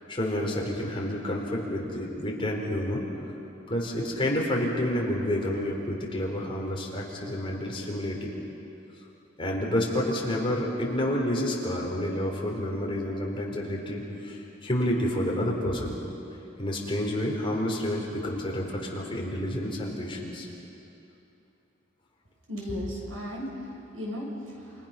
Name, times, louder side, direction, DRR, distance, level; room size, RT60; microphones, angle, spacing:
voice 1, 0.1-3.0 3.7-8.3 9.4-16.0 16.6-20.5, left 1 dB, 25° left, -2 dB, 4.3 m, -29 dB
voice 2, 22.5-24.9, left 1 dB, 85° right, -2 dB, 6.9 m, -36 dB
29.0 x 28.5 x 6.0 m, 2.9 s
head